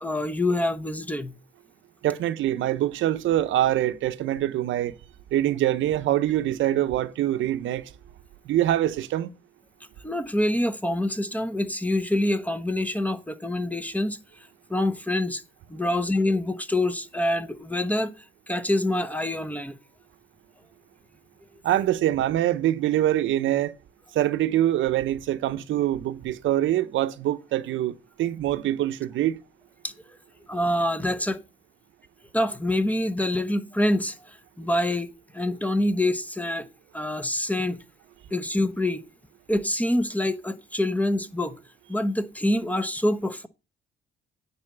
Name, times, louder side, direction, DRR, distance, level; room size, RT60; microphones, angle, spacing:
voice 1, 0.0-1.4 10.0-14.2 14.7-15.4 15.7-18.1 18.5-19.7 29.8-29.9 30.5-31.4 32.3-36.7 36.9-37.8 38.3-39.0 39.5-41.6 41.9-43.5, left 1 dB, 5° left, 0.9 m, -26 dB
voice 2, 2.0-4.9 5.3-7.9 8.4-9.3 21.6-23.7 24.1-29.4, right 13 dB, 80° right, 0.8 m, -24 dB
9.8 x 4.2 x 7.1 m
cardioid pair, 90°, 20 cm